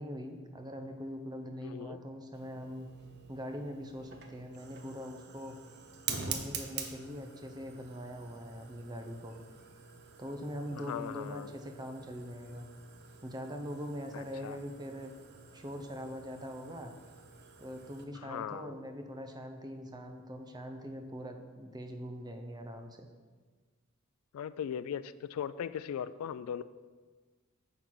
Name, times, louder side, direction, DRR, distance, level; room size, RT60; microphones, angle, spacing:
voice 1, 0.0-2.9 3.3-5.6 6.1-9.4 10.2-12.7 13.2-15.1 15.5-17.0 17.6-23.1, equal, 20° right, 5 dB, 0.7 m, -42 dB
voice 2, 1.6-2.0 10.7-11.5 14.1-14.6 18.1-18.8 24.3-26.6, left 8 dB, 80° left, 15 dB, 0.3 m, -39 dB
Fire, 2.3-18.0, right 6 dB, 50° right, 0.8 m, -46 dB
9.0 x 3.9 x 6.0 m, 1.4 s
head